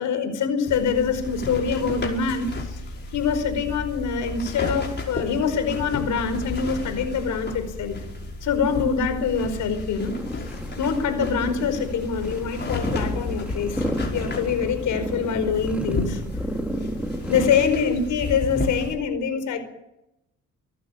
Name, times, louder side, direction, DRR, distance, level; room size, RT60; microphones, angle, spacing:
voice 1, 0.0-2.8 3.1-8.0 8.4-10.1 10.8-13.8 14.1-16.2 17.3-19.6, left 6 dB, 80° left, 9 dB, 4.9 m, -24 dB
sound 1, 0.7-18.9, left 2 dB, 35° left, 5.6 m, -33 dB
sound 2, 10.0-17.6, equal, 5° right, 3.3 m, -32 dB
25.5 x 12.0 x 8.6 m, 0.86 s
cardioid pair, 90°, 30 cm